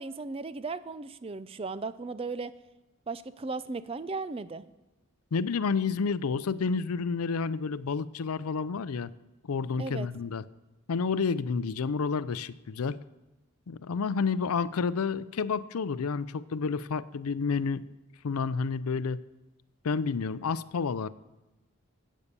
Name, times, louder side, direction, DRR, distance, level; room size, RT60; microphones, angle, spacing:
voice 1, 0.0-2.6 3.1-4.6 9.8-10.1, right 3 dB, 25° right, 15 dB, 0.4 m, -36 dB
voice 2, 5.3-9.1 9.5-10.4 10.9-13.0 13.7-17.9 18.2-19.2 19.8-21.1, left 5 dB, 85° left, 17 dB, 0.5 m, -30 dB
14.0 x 8.4 x 6.8 m, 1.0 s
head